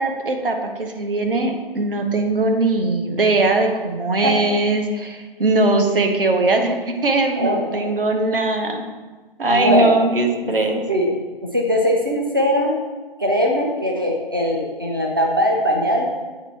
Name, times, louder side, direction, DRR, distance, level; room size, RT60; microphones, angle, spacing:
voice 1, 0.0-8.8 9.4-10.8, right 2 dB, 65° right, 4 dB, 1.0 m, -20 dB
voice 2, 7.4-7.9 9.5-9.9 10.4-10.5 10.9-11.1 11.4-12.7 13.2-16.1, equal, 25° right, 0 dB, 0.5 m, -20 dB
8.1 x 4.4 x 3.4 m, 1.3 s
figure-of-eight pair, 170°, 29 cm